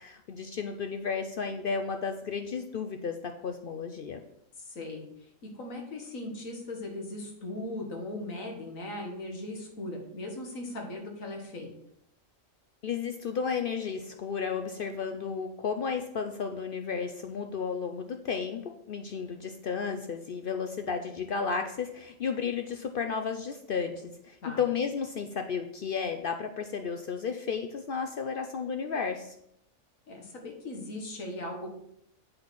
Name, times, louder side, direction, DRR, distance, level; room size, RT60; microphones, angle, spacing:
voice 1, 0.0-4.2 12.8-29.3, left 6 dB, 60° left, 6 dB, 0.6 m, -33 dB
voice 2, 4.6-11.7 24.4-24.6 30.1-31.7, left 1 dB, 85° left, 2 dB, 1.8 m, -39 dB
7.6 x 4.2 x 6.1 m, 0.76 s
omnidirectional pair, 1.4 m